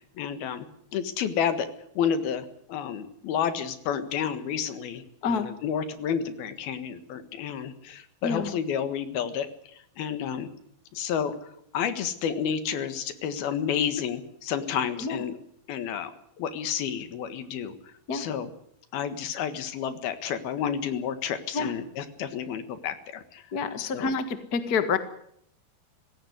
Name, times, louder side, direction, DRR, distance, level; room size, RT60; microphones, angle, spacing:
voice 1, 0.2-0.7 0.9-1.7 2.0-9.5 10.0-10.5 10.9-11.4 11.7-15.4 15.7-16.1 16.4-17.8 18.1-18.5 18.9-23.4 23.8-24.1, left 8 dB, 75° left, 11 dB, 3.4 m, -30 dB
voice 2, 5.2-5.5 8.2-8.5 15.0-15.2 18.1-18.2 21.5-21.7 23.5-25.0, left 5 dB, 55° left, 10 dB, 1.0 m, -28 dB
18.5 x 16.5 x 9.6 m, 0.69 s
omnidirectional pair, 4.5 m